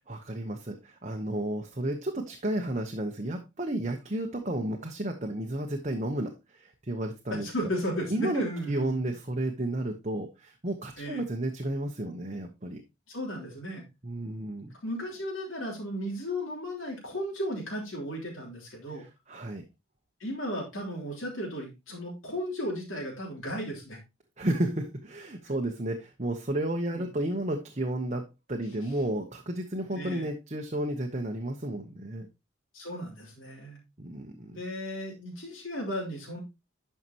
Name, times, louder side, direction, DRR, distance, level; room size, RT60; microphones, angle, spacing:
voice 1, 0.1-7.5 8.1-12.8 14.0-14.7 19.3-19.6 24.4-32.3 34.0-34.6, right 1 dB, 35° right, 3 dB, 1.1 m, -32 dB
voice 2, 7.3-9.1 11.0-11.2 13.1-13.8 14.8-19.0 20.2-24.0 26.9-27.0 29.9-30.3 32.7-33.8 34.5-36.4, equal, 85° left, -3 dB, 3.4 m, -35 dB
11.5 x 5.6 x 3.0 m, 0.24 s
head